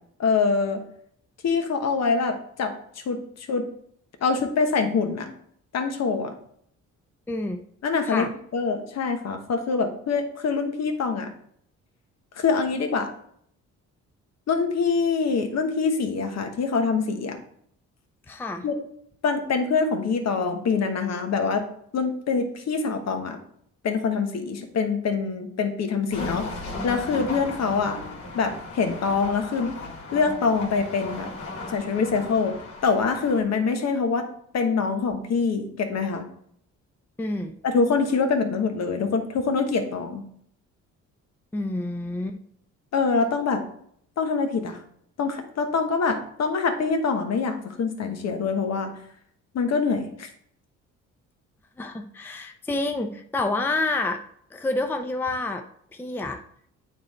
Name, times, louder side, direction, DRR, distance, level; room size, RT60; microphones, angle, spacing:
voice 1, 0.2-0.8 1.4-2.7 3.1-3.7 4.2-5.3 5.7-6.3 7.8-8.2 8.5-11.3 12.4-13.1 14.5-17.4 18.6-18.7 19.2-21.7 21.9-23.4 23.8-26.5 26.8-28.0 28.3-29.7 30.1-31.3 31.7-32.6 32.8-34.3 34.5-36.2 37.6-40.2 42.9-43.6 44.2-44.8 45.2-48.9 49.5-50.3, left 5 dB, 60° left, 6 dB, 1.1 m, -24 dB
voice 2, 7.3-7.6 8.0-8.3 18.3-18.6 37.2-37.5 41.5-42.4 51.8-54.2 54.5-55.6 55.9-56.4, left 2 dB, 5° left, 5 dB, 0.5 m, -28 dB
sound 1, 26.1-33.4, left 2 dB, 80° left, 1.8 m, -36 dB
8.6 x 3.2 x 4.2 m, 0.66 s
cardioid pair, 90°, 30 cm